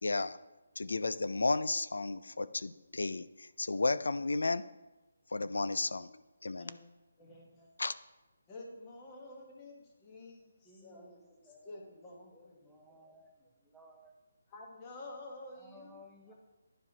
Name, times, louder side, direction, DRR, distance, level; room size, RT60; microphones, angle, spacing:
voice 1, 0.0-0.4 0.8-4.7 5.3-6.7 7.8-7.9, left 3 dB, 85° left, 15 dB, 0.4 m, -33 dB
voice 2, 6.5-6.8 7.2-7.7 8.5-13.1 14.5-16.0 16.3-16.4, left 2 dB, 20° left, -1 dB, 1.1 m, -50 dB
voice 3, 10.4-11.9 12.3-14.1 15.6-16.3, left 1 dB, ahead, -3 dB, 0.6 m, -59 dB
10.5 x 4.8 x 2.8 m, 1.1 s
hypercardioid pair, 170°, 0 cm